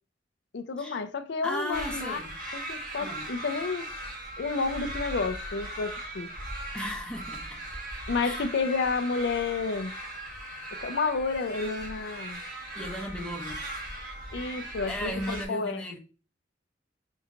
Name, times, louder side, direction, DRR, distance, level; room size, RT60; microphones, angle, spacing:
voice 1, 0.5-2.2 2.5-3.9 4.4-6.3 8.1-9.9 10.8-12.4 14.3-15.8, left 4 dB, 65° left, 0.5 m, -30 dB
voice 2, 1.4-2.3 3.0-3.3 6.7-7.6 8.2-8.5 12.7-13.6 14.9-16.0, equal, 5° left, 0.9 m, -36 dB
sound 1, 1.7-15.5, right 1 dB, 50° right, 1.2 m, -38 dB
5.4 x 2.9 x 2.4 m
head